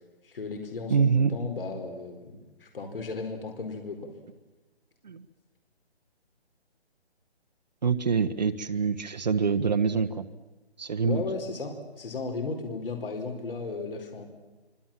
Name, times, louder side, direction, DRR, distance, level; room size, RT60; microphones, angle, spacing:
voice 1, 0.2-4.1 11.0-14.3, left 4 dB, 55° left, 4 dB, 4.7 m, -35 dB
voice 2, 0.9-1.3 5.0-5.2 7.8-10.3 10.8-11.2, right 6 dB, 40° right, 7 dB, 1.3 m, -25 dB
27.5 x 24.5 x 7.5 m, 1.1 s
hypercardioid pair, 170°, 33 cm